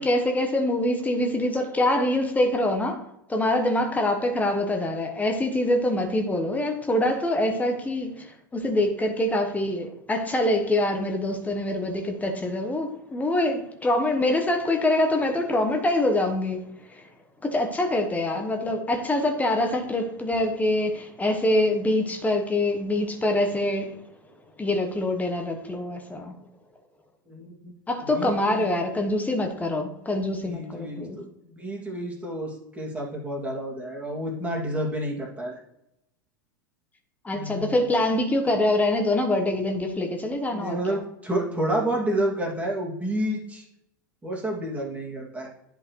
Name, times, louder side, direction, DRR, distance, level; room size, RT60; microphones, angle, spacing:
voice 1, 0.0-3.0 3.3-17.1 17.4-24.0 24.6-26.4 27.9-31.2 37.2-41.0, left 1 dB, 15° left, 5 dB, 1.1 m, -25 dB
voice 2, 27.3-27.7 28.1-28.7 30.4-35.6 37.3-37.8 40.5-43.6 44.2-45.5, right 1 dB, 10° right, -2 dB, 2.3 m, -30 dB
10.5 x 4.9 x 3.2 m, 0.84 s
hypercardioid pair, 90°, 11 cm